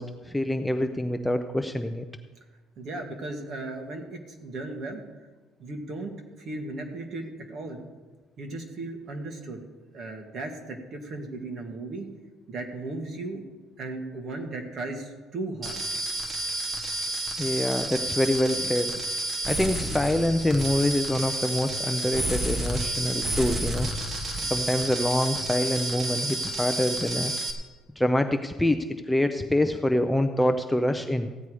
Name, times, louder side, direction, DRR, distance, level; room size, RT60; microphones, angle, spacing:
voice 1, 0.0-2.0 17.4-18.9 19.5-23.9 24.4-27.3 28.0-31.3, left 1 dB, 5° left, 6 dB, 0.4 m, -25 dB
voice 2, 2.8-5.0 5.6-7.8 8.4-9.7 9.9-12.1 12.5-13.4 13.8-15.8, right 2 dB, 40° right, 4 dB, 1.7 m, -36 dB
sound 1, 15.6-27.5, right 1 dB, 20° right, 1.3 m, -30 dB
15.0 x 9.6 x 4.9 m, 1.3 s
cardioid pair, 165°, 0 cm